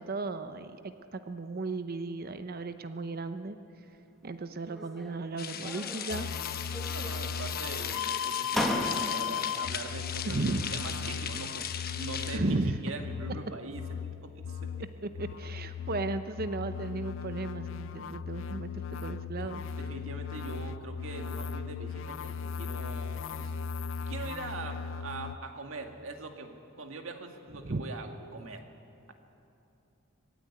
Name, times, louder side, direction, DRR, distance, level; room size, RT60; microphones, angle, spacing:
voice 1, 0.0-3.6 4.2-6.3 6.8-7.1 10.2-10.7 12.3-12.8 15.2-19.6 27.6-27.8, right 3 dB, 50° right, 10 dB, 0.7 m, -35 dB
sound 1, 4.7-5.3 5.6-6.4 6.7-7.5 8.1-8.2 8.5-9.5, equal, ahead, 1.5 m, -36 dB
sound 2, 5.4-12.4, left 8 dB, 45° left, 1.1 m, -38 dB
sound 3, 6.1-25.4, left 7 dB, 65° left, 0.4 m, -37 dB
voice 2, 6.9-10.4 10.7-14.7 19.4-23.5 24.1-28.6, right 3 dB, 75° right, 4 dB, 2.0 m, -42 dB
21.5 x 15.5 x 9.8 m, 2.8 s
head